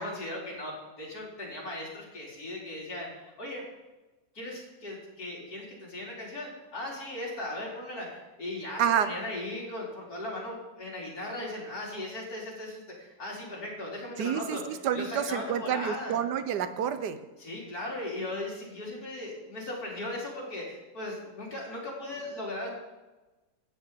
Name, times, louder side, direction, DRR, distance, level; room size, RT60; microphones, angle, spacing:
voice 1, 0.0-3.6 4.3-16.2 17.4-22.7, left 1 dB, 65° left, -4 dB, 4.1 m, -38 dB
voice 2, 8.8-9.1 14.2-17.2, right 9 dB, 85° right, 11 dB, 1.5 m, -28 dB
13.0 x 6.0 x 9.0 m, 1.1 s
omnidirectional pair, 1.7 m